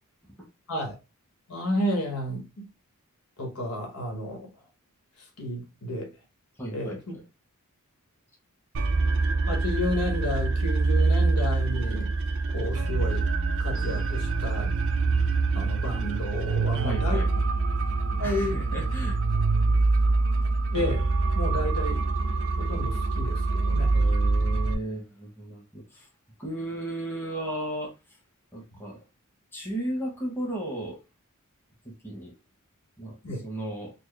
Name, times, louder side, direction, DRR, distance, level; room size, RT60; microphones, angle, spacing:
voice 1, 1.5-2.7 3.4-4.5 5.4-6.1 6.7-7.0 9.5-12.1 12.5-13.3 13.6-14.7 15.5-17.2 18.1-18.6 20.7-21.1 21.3-22.1 22.6-23.9 33.2-33.4, left 1 dB, 75° left, 1.2 m, -31 dB
voice 2, 6.6-7.2 16.8-17.3 18.2-19.2 23.9-26.1 26.4-27.9 28.5-29.0 29.5-31.0 31.8-32.3 33.0-33.2 33.4-33.9, right 1 dB, 10° left, 1.1 m, -35 dB
sound 1, 8.7-24.7, right 3 dB, 60° right, 0.5 m, -25 dB
4.3 x 2.0 x 3.1 m
head